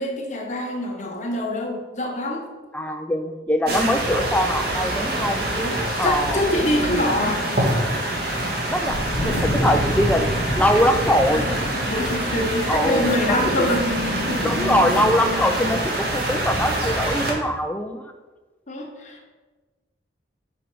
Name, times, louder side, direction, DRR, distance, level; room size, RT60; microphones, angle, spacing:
voice 1, 0.0-2.5 3.6-4.0 5.5-7.7 11.3-14.6 18.7-19.3, left 1 dB, 40° left, 1 dB, 1.1 m, -26 dB
voice 2, 2.7-5.4 6.0-6.4 8.7-11.5 12.7-13.7 14.4-18.1, equal, 10° left, 6 dB, 0.4 m, -22 dB
sound 1, 3.7-17.3, right 1 dB, 55° right, 1.5 m, -25 dB
Wind, 8.9-15.4, equal, 75° left, 1.1 m, -29 dB
5.1 x 4.5 x 6.2 m, 1.3 s
head